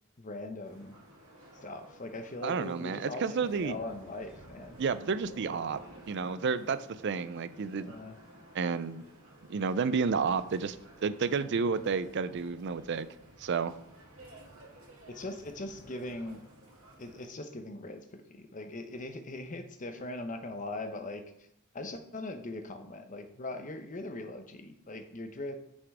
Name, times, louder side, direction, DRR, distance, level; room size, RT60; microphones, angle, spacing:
voice 1, 0.2-1.0 1.6-4.8 7.8-8.2 15.1-16.4 17.0-21.2 21.7-25.6, left 2 dB, 35° left, 7 dB, 0.8 m, -40 dB
sound 1, 0.6-17.2, right 1 dB, 75° right, 2.5 m, -54 dB
voice 2, 2.4-3.8 4.8-5.8 6.1-7.9 8.5-9.0 9.5-10.8 11.0-13.1 13.4-13.8, right 5 dB, 55° right, 14 dB, 0.4 m, -31 dB
6.3 x 5.9 x 4.8 m, 0.74 s
head